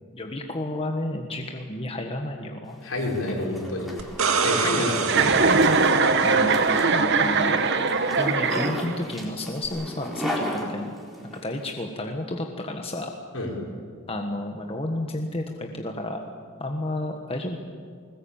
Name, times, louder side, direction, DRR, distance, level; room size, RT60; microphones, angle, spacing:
voice 1, 0.1-2.8 6.2-7.6 8.1-10.9 11.4-13.1 14.1-16.2 16.6-17.6, left 1 dB, 25° left, 3 dB, 1.4 m, -31 dB
Zipper (clothing), 2.7-11.4, equal, ahead, 4.1 m, -36 dB
voice 2, 2.8-3.9 4.4-5.6 13.3-13.5, left 1 dB, 65° left, 0 dB, 5.2 m, -28 dB
sound 1, 4.0-6.8 9.6-9.7, right 5 dB, 75° right, 1.8 m, -27 dB
Chuckle chortle, 5.0-9.1, right 4 dB, 50° right, 1.3 m, -21 dB
21.0 x 20.0 x 8.8 m, 2.1 s
head